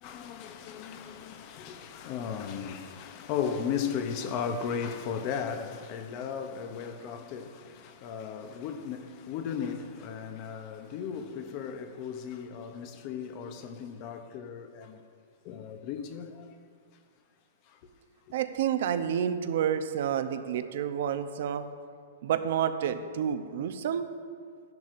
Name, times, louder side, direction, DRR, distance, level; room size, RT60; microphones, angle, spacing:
voice 1, 0.0-15.0 15.4-16.5, left 7 dB, 25° left, 0.6 m, -36 dB
voice 2, 18.3-21.7 22.2-24.1, right 9 dB, 50° right, 0.6 m, -29 dB
14.0 x 10.5 x 2.5 m
hypercardioid pair, 175°, 0 cm